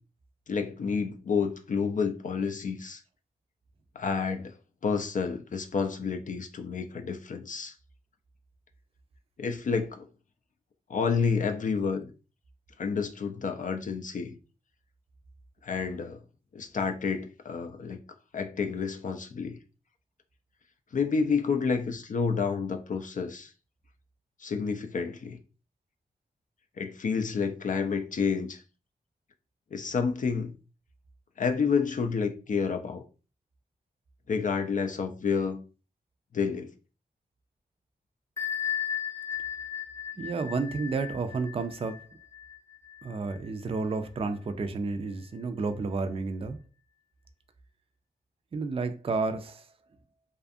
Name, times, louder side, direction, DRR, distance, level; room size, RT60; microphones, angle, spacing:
voice 1, 0.5-3.0 4.0-4.5 4.8-7.7 9.4-10.1 10.9-12.1 12.8-14.3 15.6-16.2 16.5-18.0 18.3-19.6 20.9-23.5 24.4-25.4 26.8-28.6 29.7-30.5 31.4-33.0 34.3-35.6 36.3-36.7, left 5 dB, 50° left, 0.4 m, -29 dB
Bell, 38.4-43.8, left 9 dB, 15° left, 0.7 m, -36 dB
voice 2, 40.2-42.0 43.0-46.6 48.5-49.7, right 4 dB, 35° right, 0.4 m, -31 dB
2.5 x 2.4 x 2.5 m
cardioid pair, 65°, 17 cm